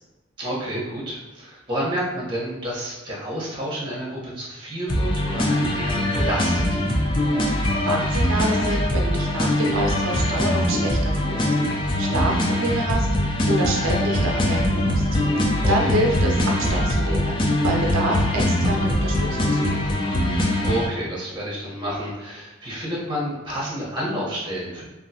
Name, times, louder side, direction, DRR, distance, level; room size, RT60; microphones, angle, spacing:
voice 1, 0.4-6.8 15.6-16.0 20.6-24.9, equal, 25° right, -6 dB, 0.9 m, -29 dB
sound 1, 4.9-20.9, left 1 dB, 25° left, 0.3 m, -22 dB
voice 2, 7.5-11.4 11.7-15.0 15.7-17.4 17.6-19.9, right 1 dB, 85° right, 0 dB, 0.4 m, -27 dB
3.0 x 2.5 x 2.7 m, 1.1 s
head